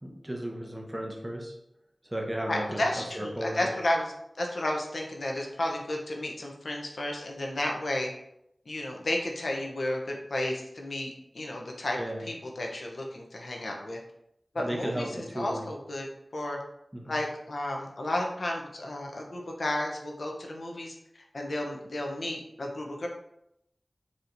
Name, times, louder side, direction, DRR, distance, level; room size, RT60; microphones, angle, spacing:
voice 1, 0.0-1.5 2.1-3.7 12.0-12.2 14.6-15.7 16.9-17.1, right 1 dB, 10° right, -1 dB, 0.6 m, -35 dB
voice 2, 2.5-8.1 8.7-14.0 14.5-16.1 16.3-16.6 17.0-20.9 21.3-23.1, left 1 dB, 70° left, 0 dB, 0.7 m, -32 dB
4.1 x 2.9 x 2.6 m, 0.79 s
wide cardioid pair, 75°, 0 cm